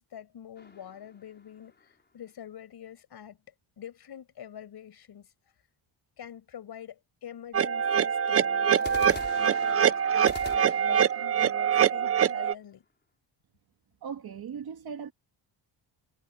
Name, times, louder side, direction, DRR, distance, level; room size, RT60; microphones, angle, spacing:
voice 1, 0.0-3.4 3.8-5.3 6.2-12.8, left 9 dB, 50° left, 5.8 m, -46 dB
sound 1, 0.6-2.0 8.8-12.7, left 4 dB, 20° left, 5.4 m, -45 dB
sound 2, 7.5-12.5, right 8 dB, 30° right, 0.5 m, -24 dB
voice 2, 14.0-15.1, right 7 dB, 45° right, 2.3 m, -38 dB
cardioid pair, 175°, 49 cm